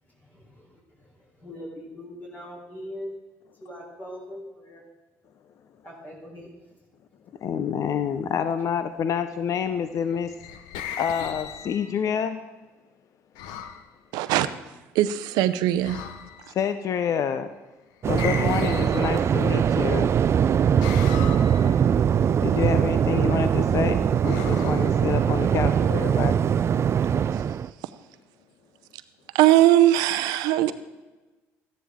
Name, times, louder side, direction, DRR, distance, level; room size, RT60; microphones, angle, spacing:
voice 1, 0.0-3.1 3.6-4.9 5.8-6.5, equal, 30° left, -3 dB, 4.0 m, -41 dB
voice 2, 7.4-10.3 11.0-12.4 16.5-17.5 18.0-20.1 22.4-26.5, left 7 dB, 55° left, 10 dB, 0.6 m, -27 dB
sound 1, 10.1-12.1 13.4-13.9 15.8-16.6 18.2-19.6 20.8-21.8 24.2-25.4, left 8 dB, 80° left, 0.9 m, -37 dB
voice 3, 14.1-14.5 14.9-16.0 29.3-30.7, right 14 dB, 80° right, 13 dB, 0.6 m, -19 dB
Waves surf, 18.0-27.7, right 8 dB, 40° right, 0.4 m, -22 dB
14.0 x 10.0 x 3.7 m, 1.2 s
supercardioid pair, 75°, 7 cm